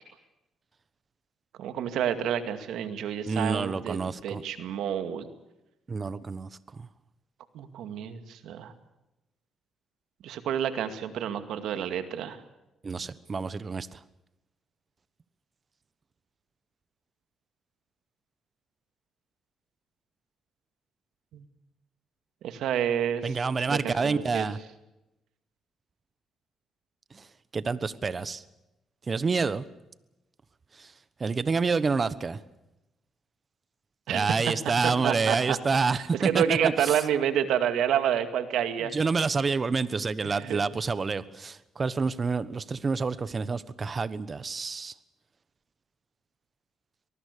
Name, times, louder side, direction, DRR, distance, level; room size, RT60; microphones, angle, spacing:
voice 1, 1.6-5.3 7.5-8.7 10.2-12.4 21.3-21.5 22.4-23.4 23.7-24.5 34.1-34.4 34.8-35.6 35.9-38.9 40.2-40.6, right 9 dB, 80° right, 9 dB, 2.2 m, -29 dB
voice 2, 3.3-4.4 5.9-6.9 12.8-14.0 23.2-24.6 27.1-27.2 27.5-28.4 29.1-29.6 30.8-30.9 31.2-32.4 34.1-36.9 38.9-44.9, right 4 dB, 35° right, 16 dB, 1.2 m, -28 dB
25.0 x 19.5 x 6.8 m, 0.94 s
cardioid pair, 90°, 0 cm